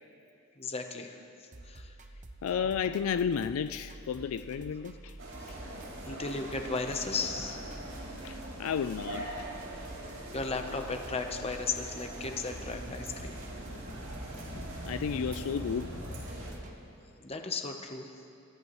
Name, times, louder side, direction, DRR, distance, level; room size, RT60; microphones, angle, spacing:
voice 1, 0.6-1.2 1.6-1.9 5.7-7.7 10.3-13.3 17.2-18.1, left 4 dB, 30° left, 5 dB, 0.9 m, -35 dB
sound 1, 1.5-16.7, right 2 dB, 35° right, 0.8 m, -49 dB
voice 2, 2.4-5.1 5.5-5.6 8.2-9.3 13.3-13.4 14.6-16.0, left 7 dB, 80° left, 11 dB, 0.4 m, -33 dB
sound 2, 5.2-16.5, right 1 dB, 80° right, 4.3 m, -42 dB
26.5 x 13.5 x 3.1 m, 2.6 s
head